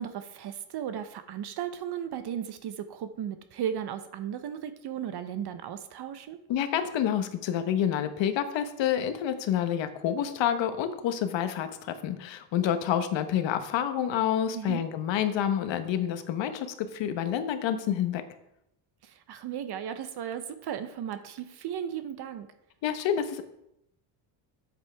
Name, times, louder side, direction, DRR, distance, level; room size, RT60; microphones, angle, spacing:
voice 1, 0.0-6.4 14.5-14.9 19.0-22.5, right 9 dB, 55° right, 10 dB, 0.8 m, -35 dB
voice 2, 6.5-18.2 22.8-23.4, left 9 dB, 65° left, 9 dB, 1.0 m, -28 dB
8.2 x 8.1 x 3.4 m, 0.80 s
cardioid pair, 100°, 48 cm